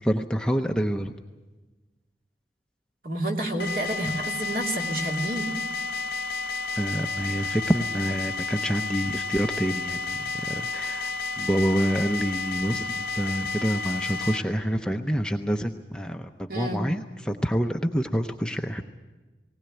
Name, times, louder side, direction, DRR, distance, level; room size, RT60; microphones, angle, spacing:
voice 1, 0.0-1.1 6.8-18.8, equal, 5° left, 4 dB, 0.6 m, -27 dB
voice 2, 3.0-5.5 16.5-16.8, right 1 dB, 50° right, 1 dB, 2.7 m, -29 dB
sound 1, 3.6-14.4, left 3 dB, 55° left, 0.7 m, -31 dB
19.5 x 19.0 x 9.0 m, 1.2 s
head